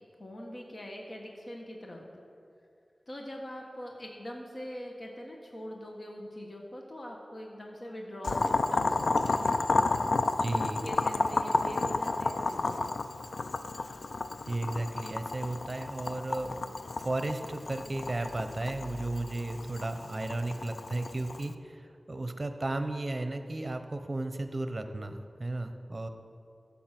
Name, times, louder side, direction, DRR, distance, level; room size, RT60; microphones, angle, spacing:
voice 1, 0.2-2.2 3.1-9.6 10.4-12.8, equal, 45° left, 0 dB, 1.5 m, -43 dB
Boiling, 8.2-21.5, left 3 dB, 80° left, 0.4 m, -31 dB
voice 2, 10.4-10.8 14.5-26.1, right 2 dB, 40° right, 7 dB, 0.9 m, -34 dB
14.0 x 7.3 x 6.0 m, 2.5 s
wide cardioid pair, 80°, 0 cm